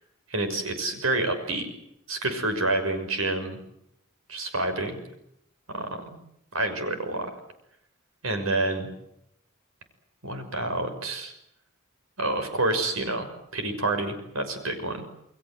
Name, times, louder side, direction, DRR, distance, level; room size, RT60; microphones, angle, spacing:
voice 1, 0.3-1.7 2.1-3.6 4.3-5.0 5.7-6.0 6.5-7.3 8.2-8.9 10.2-11.3 12.2-15.0, right 2 dB, 85° right, 8 dB, 6.3 m, -28 dB
29.5 x 21.5 x 7.9 m, 0.76 s
head